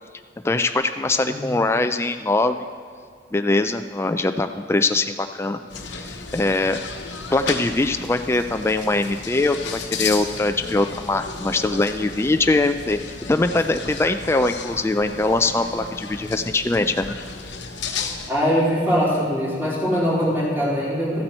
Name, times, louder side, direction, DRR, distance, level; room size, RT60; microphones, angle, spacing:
voice 1, 0.4-2.6 3.3-5.6 5.9-6.8 7.3-13.0 13.3-17.1, left 2 dB, 15° left, 8 dB, 0.3 m, -22 dB
voice 2, 1.2-1.5 18.3-21.2, equal, 10° right, -8 dB, 3.3 m, -22 dB
sound 1, 5.7-18.3, left 4 dB, 80° left, 0.9 m, -33 dB
14.5 x 8.2 x 4.4 m, 2.2 s
head